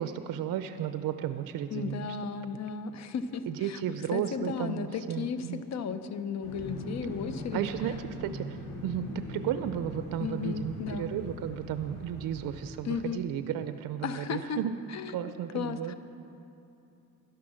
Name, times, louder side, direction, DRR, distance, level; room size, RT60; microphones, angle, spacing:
voice 1, 0.0-2.2 3.5-5.6 7.5-14.8 15.1-15.9, right 10 dB, 65° right, 10 dB, 0.5 m, -34 dB
voice 2, 1.7-3.8 4.1-7.6 10.2-11.1 12.8-13.2 14.0-14.6 14.9-15.9, left 6 dB, 50° left, 11 dB, 0.8 m, -35 dB
sound 1, 6.4-12.7, equal, 85° left, 3.1 m, -41 dB
11.5 x 10.5 x 6.2 m, 2.8 s
cardioid pair, 120°, 36 cm